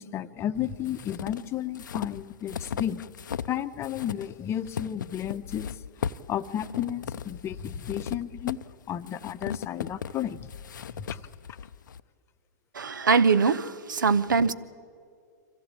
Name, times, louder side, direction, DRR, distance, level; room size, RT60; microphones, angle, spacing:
voice 1, 0.0-3.0 3.5-5.7 6.3-8.6 8.9-10.5 11.0-11.2, left 10 dB, 25° left, 0.8 m, -32 dB
sound 1, 0.5-3.6 3.8-12.0, left 8 dB, 75° left, 0.6 m, -37 dB
voice 2, 12.7-14.5, right 5 dB, 85° right, 0.8 m, -22 dB
25.0 x 16.0 x 8.7 m
hypercardioid pair, 115°, 10 cm